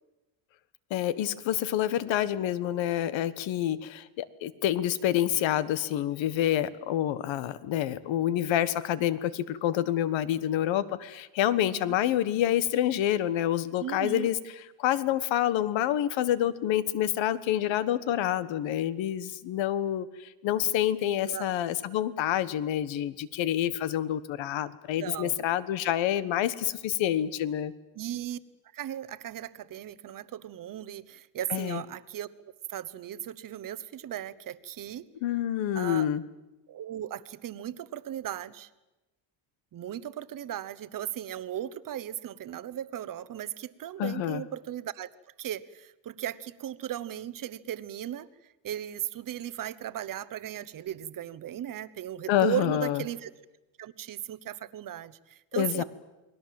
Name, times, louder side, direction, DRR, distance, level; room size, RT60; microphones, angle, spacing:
voice 1, 0.9-14.4 14.8-27.7 31.5-31.8 35.2-36.2 44.0-44.4 52.3-53.0 55.6-55.8, left 12 dB, 65° left, 15 dB, 1.5 m, -28 dB
voice 2, 11.6-12.0 13.8-14.3 21.2-21.6 25.0-25.5 27.9-28.4 28.7-32.3 32.7-35.1 35.7-36.1 36.7-38.7 39.7-45.1 45.4-53.3 53.8-55.8, right 11 dB, 40° right, 15 dB, 1.1 m, -37 dB
29.0 x 21.0 x 7.7 m, 1.0 s
cardioid pair, 145°, 48 cm